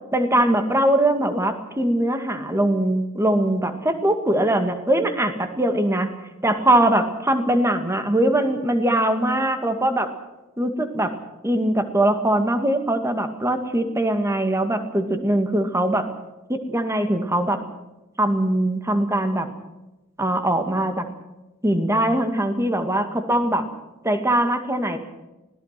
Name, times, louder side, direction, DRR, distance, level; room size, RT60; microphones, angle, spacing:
voice 1, 0.1-6.1 6.4-10.1 10.6-11.1 11.4-16.1 16.5-17.6 18.2-19.5 20.2-21.0 21.6-23.6 24.0-25.0, right 1 dB, 15° right, 7 dB, 2.1 m, -21 dB
25.5 x 17.5 x 6.0 m, 1.0 s
head